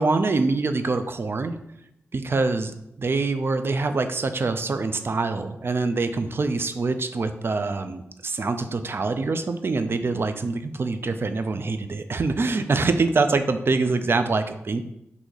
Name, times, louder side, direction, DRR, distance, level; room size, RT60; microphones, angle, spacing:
voice 1, 0.0-1.5 2.1-14.8, right 3 dB, 50° right, 8 dB, 0.3 m, -25 dB
2.9 x 2.6 x 3.8 m, 0.83 s
cardioid pair, 40°, 5 cm